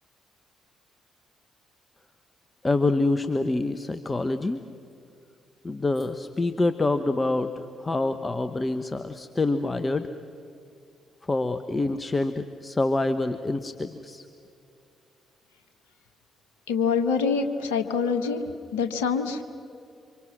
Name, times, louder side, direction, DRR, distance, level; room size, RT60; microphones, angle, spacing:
voice 1, 2.6-4.6 5.6-7.5 7.8-10.1 11.3-14.2, left 2 dB, 25° left, 9 dB, 1.2 m, -26 dB
voice 2, 16.7-18.4 18.7-19.4, left 5 dB, 80° left, 7 dB, 1.4 m, -25 dB
29.0 x 25.5 x 6.2 m, 2.4 s
hypercardioid pair, 45°, 0 cm